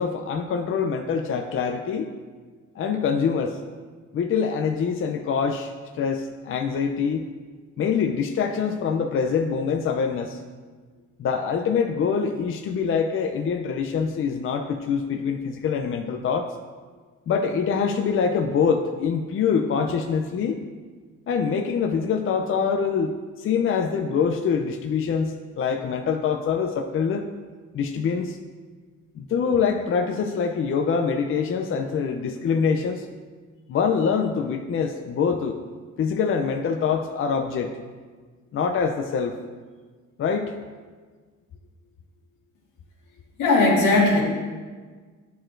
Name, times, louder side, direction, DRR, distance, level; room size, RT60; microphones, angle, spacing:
voice 1, 0.0-2.1 2.8-3.6 4.1-7.3 7.8-10.4 11.2-16.5 17.3-20.6 21.3-27.3 27.7-28.4 29.2-33.1 33.7-35.6 36.0-37.8 38.5-39.4 40.2-40.5, left 6 dB, 45° left, 5 dB, 0.5 m, -24 dB
voice 2, 43.4-44.2, left 2 dB, 80° left, -3 dB, 1.8 m, -18 dB
10.0 x 4.4 x 2.5 m, 1.5 s
cardioid pair, 90°, 30 cm